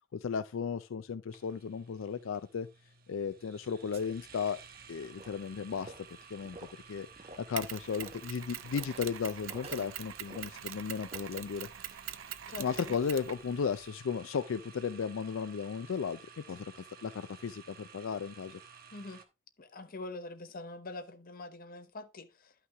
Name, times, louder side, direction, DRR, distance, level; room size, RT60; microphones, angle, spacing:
voice 1, 0.1-2.7 3.1-4.6 4.9-7.1 7.4-11.7 12.6-18.6, left 6 dB, 80° left, 0.4 m, -35 dB
sound 1, 1.3-19.2, right 6 dB, 50° right, 1.2 m, -54 dB
sound 2, 3.9-11.6, right 2 dB, 30° right, 1.1 m, -54 dB
Mechanisms, 7.6-13.9, right 11 dB, 85° right, 0.6 m, -44 dB
voice 2, 12.5-13.0 18.9-19.2 19.6-22.5, left 2 dB, 45° left, 0.9 m, -44 dB
11.0 x 5.9 x 3.4 m
head